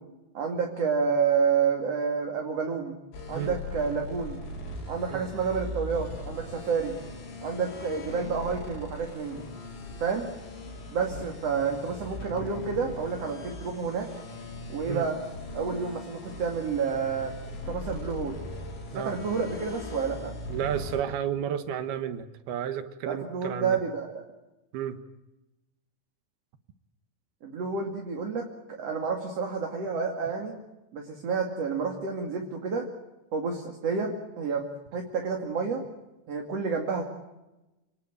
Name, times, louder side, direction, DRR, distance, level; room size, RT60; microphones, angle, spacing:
voice 1, 0.3-2.9 3.3-4.4 4.9-6.9 7.4-9.4 10.0-10.3 10.9-14.1 14.7-15.2 15.5-17.3 17.7-18.4 18.9-20.3 23.0-24.2 27.4-30.6 30.9-32.9 33.3-34.6 34.9-35.8 36.3-37.0, right 5 dB, 40° right, 2 dB, 2.8 m, -29 dB
sound 1, 3.1-21.0, left 1 dB, 85° left, 7.4 m, -40 dB
voice 2, 20.5-23.8 24.7-25.0, right 9 dB, 70° right, 10 dB, 3.0 m, -32 dB
28.0 x 19.5 x 9.1 m, 1.0 s
omnidirectional pair, 5.0 m